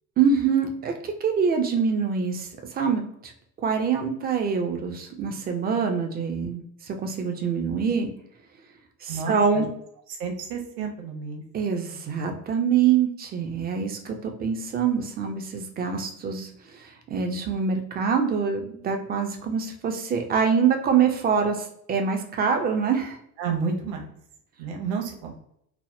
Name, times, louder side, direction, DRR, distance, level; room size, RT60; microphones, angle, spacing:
voice 1, 0.2-3.0 3.6-6.6 6.9-8.1 9.0-9.7 11.5-23.2, right 6 dB, 20° right, 4 dB, 0.4 m, -25 dB
voice 2, 9.1-9.6 10.2-11.4 23.4-24.0 24.6-25.3, right 5 dB, 60° right, 2 dB, 0.8 m, -30 dB
3.3 x 2.0 x 2.5 m, 0.72 s
figure-of-eight pair, 60°, 47 cm